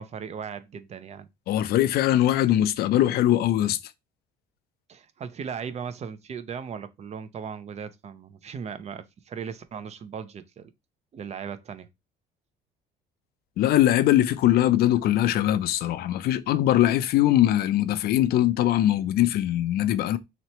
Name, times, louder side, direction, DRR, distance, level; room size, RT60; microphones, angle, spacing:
voice 1, 0.0-1.3 4.9-10.7 11.1-11.9, right 7 dB, 40° right, 0.5 m, -37 dB
voice 2, 1.5-3.8 13.6-20.2, left 13 dB, 65° left, 0.4 m, -21 dB
3.0 x 2.9 x 4.2 m
cardioid pair, 110°, 17 cm